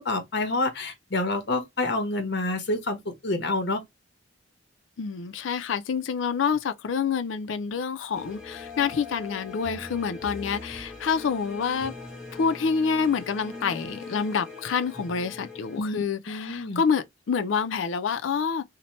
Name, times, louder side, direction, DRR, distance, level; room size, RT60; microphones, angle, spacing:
voice 1, 0.0-3.8 15.8-16.8, left 2 dB, 60° left, 0.9 m, -28 dB
voice 2, 5.0-11.9 12.3-18.6, left 6 dB, 85° left, 0.4 m, -27 dB
sound 1, 8.1-15.8, left 3 dB, 5° right, 0.8 m, -41 dB
2.8 x 2.1 x 2.9 m
head